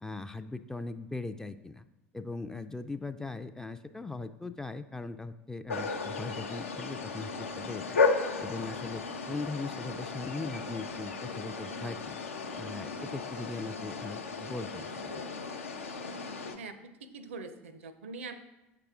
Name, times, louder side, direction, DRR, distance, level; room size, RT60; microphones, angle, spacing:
voice 1, 0.0-1.9 2.1-8.0 8.4-12.2 12.6-15.3, left 3 dB, 10° left, 10 dB, 0.3 m, -40 dB
sound 1, 5.7-16.6, left 4 dB, 75° left, 0.5 m, -34 dB
voice 2, 16.6-18.3, right 4 dB, 70° right, 12 dB, 0.5 m, -43 dB
8.0 x 5.8 x 3.5 m, 0.98 s
figure-of-eight pair, 70°, 7 cm